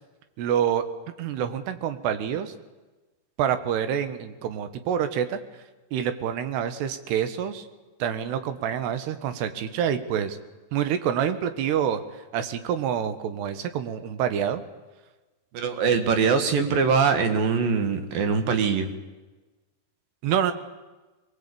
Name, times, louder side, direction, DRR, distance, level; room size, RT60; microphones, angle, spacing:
voice 1, 0.4-0.8 1.2-2.5 3.4-5.4 5.9-7.7 8.0-10.4 10.7-12.0 12.3-14.6 20.2-20.5, right 9 dB, 90° right, 10 dB, 3.5 m, -27 dB
voice 2, 15.5-18.9, right 5 dB, 65° right, 8 dB, 3.4 m, -22 dB
23.0 x 20.0 x 8.7 m, 1.2 s
omnidirectional pair, 4.6 m